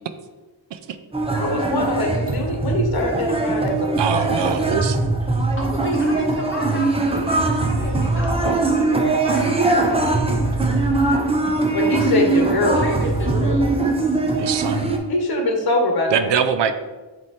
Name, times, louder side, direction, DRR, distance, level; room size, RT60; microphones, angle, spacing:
sound 1, 1.1-15.0, right 2 dB, 15° right, 0.7 m, -21 dB
voice 1, 1.3-4.5 11.7-13.0 15.1-16.3, left 2 dB, 55° left, 2 dB, 1.2 m, -23 dB
voice 2, 4.0-5.0 14.4-14.9 16.1-16.7, right 7 dB, 70° right, 10 dB, 0.6 m, -22 dB
voice 3, 5.3-10.2 12.0-12.2 12.8-13.8, left 1 dB, 25° left, -2 dB, 1.5 m, -32 dB
7.5 x 3.1 x 4.2 m, 1.2 s
wide cardioid pair, 130°, 45 cm